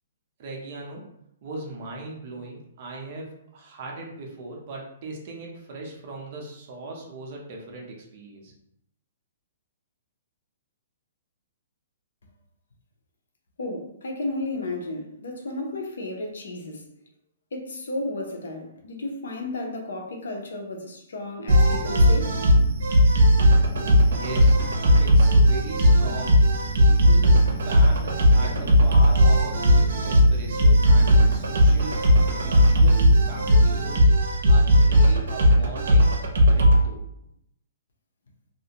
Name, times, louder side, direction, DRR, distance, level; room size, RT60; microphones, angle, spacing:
voice 1, 0.4-1.0 1.4-8.5 23.7-24.6 25.0-26.4 26.9-32.0 32.4-34.1 34.5-37.0, right 2 dB, 35° right, -1 dB, 0.6 m, -39 dB
voice 2, 13.6-16.9 17.5-22.4, left 2 dB, 90° left, 2 dB, 0.6 m, -33 dB
sound 1, 21.5-36.8, equal, 85° right, 0.6 m, -17 dB
2.4 x 2.1 x 2.8 m, 0.77 s
hypercardioid pair, 170°, 0 cm